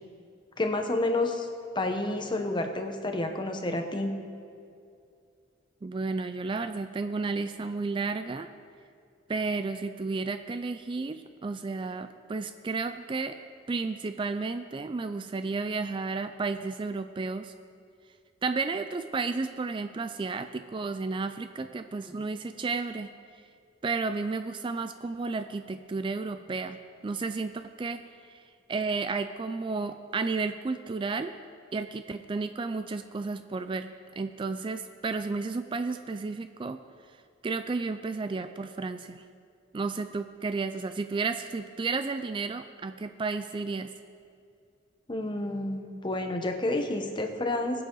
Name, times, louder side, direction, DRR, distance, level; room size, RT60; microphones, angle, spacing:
voice 1, 0.6-1.5 1.7-4.2 45.1-47.8, left 2 dB, 25° left, 5 dB, 1.0 m, -29 dB
voice 2, 5.8-8.5 9.3-13.3 13.7-17.5 18.4-23.1 23.8-28.4 28.7-31.3 31.7-36.8 37.4-39.2 39.7-43.9, right 4 dB, 25° right, 9 dB, 0.3 m, -32 dB
20.5 x 7.8 x 3.9 m, 2.4 s
head